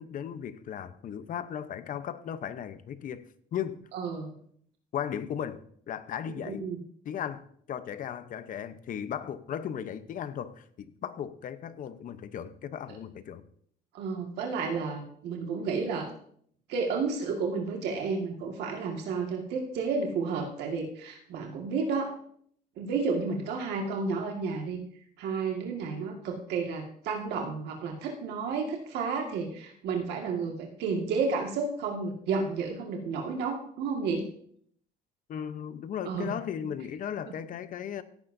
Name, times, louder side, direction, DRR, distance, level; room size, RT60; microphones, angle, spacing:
voice 1, 0.0-3.2 3.5-3.8 4.9-6.6 7.0-13.4 35.3-38.0, left 9 dB, 55° left, 0.9 m, -36 dB
voice 2, 3.9-4.3 6.3-6.8 13.9-16.1 16.7-22.1 22.8-24.8 25.2-34.3 36.1-36.4 37.3-37.4, right 4 dB, 80° right, 2.0 m, -31 dB
16.5 x 9.9 x 2.7 m
cardioid pair, 110°, 17 cm